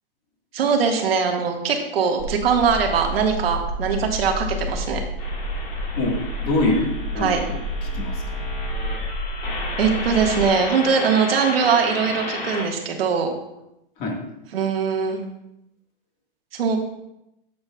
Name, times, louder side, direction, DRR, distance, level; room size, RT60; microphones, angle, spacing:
voice 1, 0.5-5.0 7.2-7.4 9.8-13.3 14.5-15.2 16.5-16.8, right 6 dB, 90° right, 2 dB, 1.6 m, -21 dB
sound 1, 2.2-10.5, equal, 40° right, 0.9 m, -30 dB
sound 2, 5.2-12.7, left 3 dB, 85° left, 2.6 m, -33 dB
voice 2, 5.9-8.5 14.0-14.2, left 2 dB, 30° left, 1 dB, 1.6 m, -26 dB
10.5 x 7.0 x 2.3 m, 0.85 s
hypercardioid pair, 150°, 29 cm